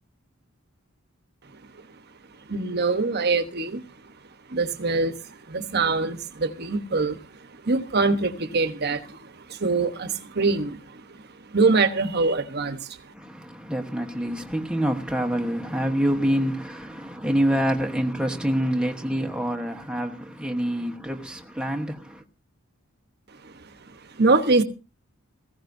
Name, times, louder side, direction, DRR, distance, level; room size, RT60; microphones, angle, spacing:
voice 1, 2.5-3.8 4.5-7.3 7.5-13.0 23.4-23.5 23.9-24.6, right 3 dB, 50° right, 1.1 m, -24 dB
voice 2, 13.1-22.2, equal, 5° right, 1.1 m, -26 dB
19.0 x 15.5 x 2.7 m
head